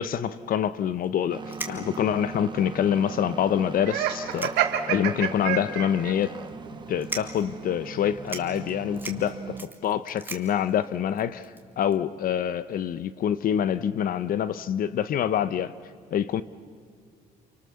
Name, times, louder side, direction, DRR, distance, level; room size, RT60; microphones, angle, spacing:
voice 1, 0.0-6.4 6.9-11.5 11.8-15.7 16.1-16.4, left 9 dB, 55° left, 0.9 m, -26 dB
sound 1, 1.0-1.1 1.5-2.2 2.8-2.9 3.2-3.3 4.1-5.0 5.4-5.5 6.2-6.5 7.0-7.5 7.9-8.0 8.2-11.9, right 3 dB, 10° right, 2.4 m, -39 dB
sound 2, 1.3-9.6, right 5 dB, 25° right, 1.4 m, -40 dB
Laughter, 3.8-6.1, right 11 dB, 80° right, 1.8 m, -27 dB
28.5 x 24.5 x 7.1 m
cardioid pair, 110°, 17 cm